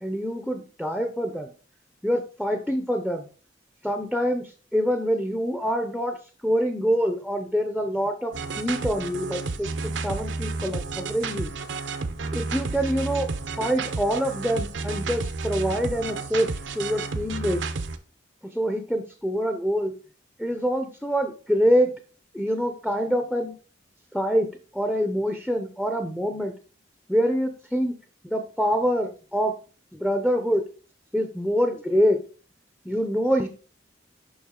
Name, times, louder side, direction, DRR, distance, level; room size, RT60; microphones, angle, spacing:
voice 1, 0.0-1.5 2.0-3.3 3.8-6.2 6.4-11.5 12.3-13.3 13.6-17.6 18.4-19.9 20.4-21.9 22.3-23.6 24.1-24.5 24.7-26.5 27.1-28.0 28.2-29.5 29.9-30.6 31.1-32.2 32.8-33.5, equal, ahead, 5 dB, 0.5 m, -25 dB
sound 1, 8.3-18.0, right 3 dB, 75° right, 0.7 m, -31 dB
7.2 x 5.4 x 3.7 m, 0.38 s
head